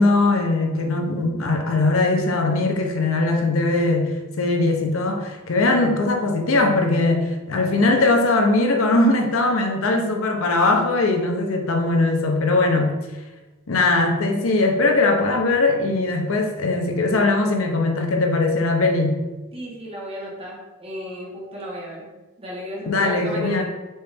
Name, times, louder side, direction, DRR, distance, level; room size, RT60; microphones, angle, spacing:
voice 1, 0.0-12.9 13.7-19.2 22.9-23.6, left 2 dB, 75° left, 3 dB, 0.7 m, -20 dB
voice 2, 19.5-22.1 22.4-23.6, left 1 dB, 30° right, -4 dB, 1.2 m, -33 dB
4.3 x 3.2 x 3.4 m, 1.2 s
head